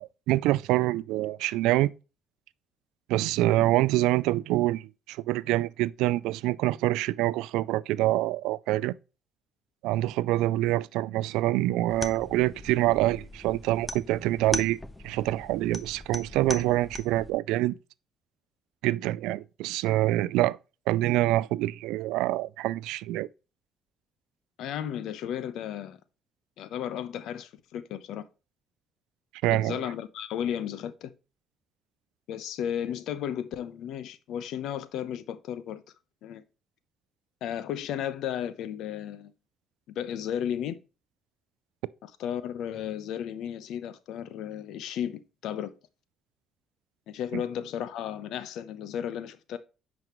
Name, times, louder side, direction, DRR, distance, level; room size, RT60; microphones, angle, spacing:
voice 1, 0.0-1.9 3.1-8.9 9.8-14.8 15.0-17.8 18.8-20.6 20.9-23.3 29.4-29.8 47.3-47.4, right 16 dB, 85° right, 0.3 m, -26 dB
sound 1, 11.9-17.3, left 2 dB, 15° left, 0.7 m, -39 dB
voice 2, 24.6-26.0 26.6-28.2 29.5-31.1 32.3-35.8 36.2-36.4 37.4-39.3 39.9-40.8 42.0-45.7 47.1-49.6, left 9 dB, 75° left, 0.8 m, -34 dB
9.2 x 5.2 x 3.0 m
supercardioid pair, 70°, 0 cm